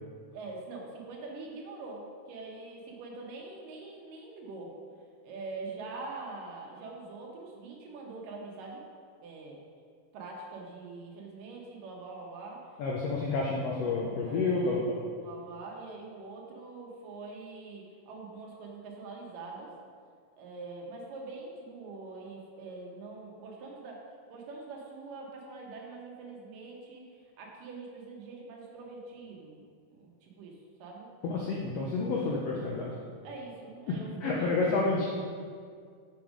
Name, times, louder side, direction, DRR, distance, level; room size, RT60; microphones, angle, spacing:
voice 1, 0.3-4.7 5.2-8.8 9.2-9.6 10.1-12.6 14.2-19.7 20.4-24.0 24.3-29.6 29.9-31.1 33.2-34.9, right 3 dB, 80° right, -1 dB, 2.8 m, -44 dB
voice 2, 12.8-14.8 31.3-32.9 33.9-35.1, left 3 dB, 80° left, -3 dB, 1.4 m, -29 dB
6.9 x 6.2 x 5.0 m, 2.1 s
omnidirectional pair, 3.9 m